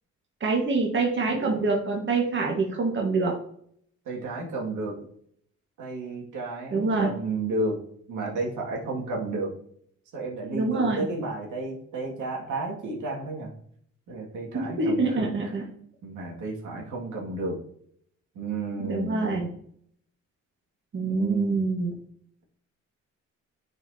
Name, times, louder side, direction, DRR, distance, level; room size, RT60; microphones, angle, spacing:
voice 1, 0.4-3.3 6.7-7.1 10.5-11.1 14.5-15.6 18.8-19.5 20.9-21.9, right 3 dB, 40° right, 0 dB, 1.4 m, -25 dB
voice 2, 4.1-4.9 5.8-7.8 8.1-9.5 10.1-13.5 14.1-15.3 16.0-17.6 18.4-19.4 21.0-21.6, right 2 dB, 80° right, -2 dB, 2.1 m, -32 dB
9.7 x 4.3 x 2.7 m, 0.65 s
cardioid pair, 90°, 30 cm